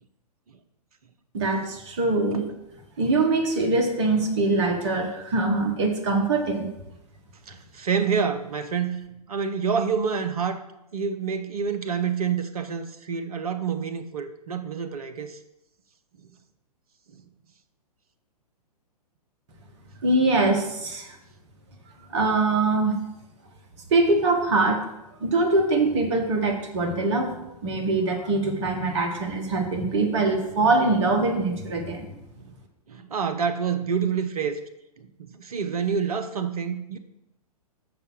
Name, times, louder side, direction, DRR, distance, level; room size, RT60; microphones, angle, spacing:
voice 1, 1.3-2.4 3.0-6.7 20.0-21.2 22.1-23.0 23.9-24.8 25.2-27.3 27.6-32.1, right 2 dB, 45° right, 3 dB, 1.7 m, -23 dB
voice 2, 7.5-10.6 10.9-15.4 16.2-16.3 17.1-17.2 32.4-32.5 32.9-34.6 35.0-37.0, right 6 dB, 65° right, 9 dB, 0.8 m, -28 dB
6.7 x 5.4 x 6.3 m, 0.84 s
figure-of-eight pair, 115°, 20 cm